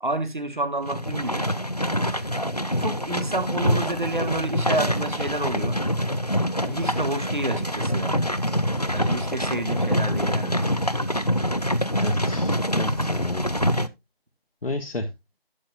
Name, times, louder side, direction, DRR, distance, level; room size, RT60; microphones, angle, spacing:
voice 1, 0.0-1.5 2.3-5.8 6.5-8.2 8.9-10.7, right 2 dB, 55° right, 1.5 m, -29 dB
sound 1, 0.8-13.9, equal, 40° left, 0.5 m, -25 dB
voice 2, 12.0-13.6 14.6-15.1, left 2 dB, 65° left, 1.3 m, -30 dB
11.5 x 8.5 x 2.3 m
figure-of-eight pair, 175°, 30 cm